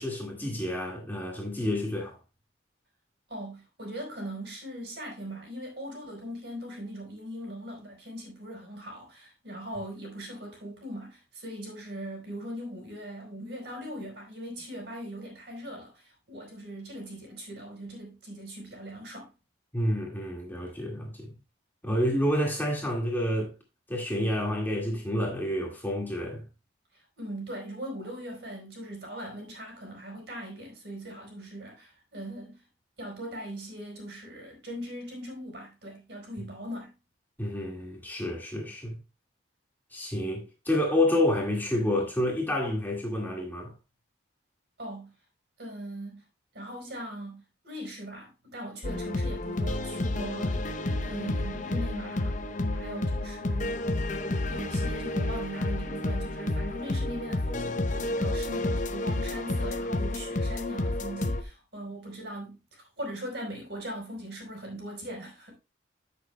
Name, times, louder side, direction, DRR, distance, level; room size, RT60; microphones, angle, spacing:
voice 1, 0.0-2.2 19.7-21.3 21.8-23.5 23.9-26.4 37.4-38.9 39.9-43.7, left 1 dB, 10° left, 1.8 m, -29 dB
voice 2, 3.3-19.3 26.9-32.6 33.0-36.9 44.8-45.1 45.6-46.2 46.5-50.7 51.0-52.4 52.7-53.9 54.4-65.6, equal, 55° right, 4.5 m, -40 dB
sound 1, 48.8-61.4, left 2 dB, 40° left, 0.7 m, -30 dB
14.0 x 6.7 x 2.2 m
head